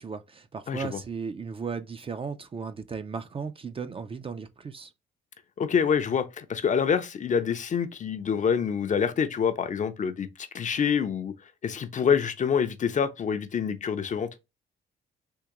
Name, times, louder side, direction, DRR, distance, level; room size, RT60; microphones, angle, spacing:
voice 1, 0.0-4.9, right 5 dB, 30° right, 0.4 m, -36 dB
voice 2, 0.7-1.0 5.6-14.3, left 7 dB, 40° left, 0.5 m, -26 dB
3.6 x 2.8 x 2.9 m
cardioid pair, 90°, 20 cm